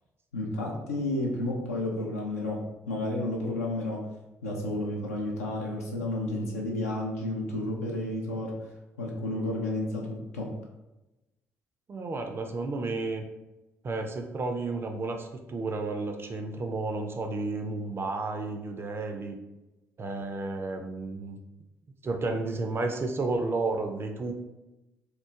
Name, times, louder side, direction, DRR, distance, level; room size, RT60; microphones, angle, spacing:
voice 1, 0.3-4.1 4.4-8.6 9.0-10.6, left 1 dB, 80° left, -1 dB, 0.4 m, -31 dB
voice 2, 11.9-13.2 13.8-19.3 20.0-21.4 22.0-24.3, right 3 dB, 30° right, 4 dB, 0.4 m, -32 dB
2.9 x 2.0 x 2.3 m, 1.0 s
figure-of-eight pair, 45°, 8 cm